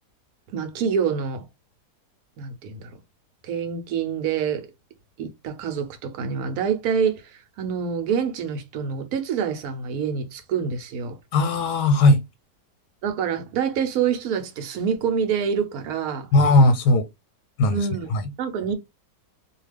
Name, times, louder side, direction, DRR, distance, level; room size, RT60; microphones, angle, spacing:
voice 1, 0.5-1.4 2.4-2.9 3.4-4.7 5.2-11.2 13.0-16.3 17.7-18.1 18.4-18.7, right 7 dB, 70° right, 1.1 m, -26 dB
voice 2, 11.3-12.2 16.3-17.1 17.6-18.2, left 2 dB, 90° left, 1.2 m, -18 dB
2.7 x 2.3 x 3.3 m
omnidirectional pair, 1.8 m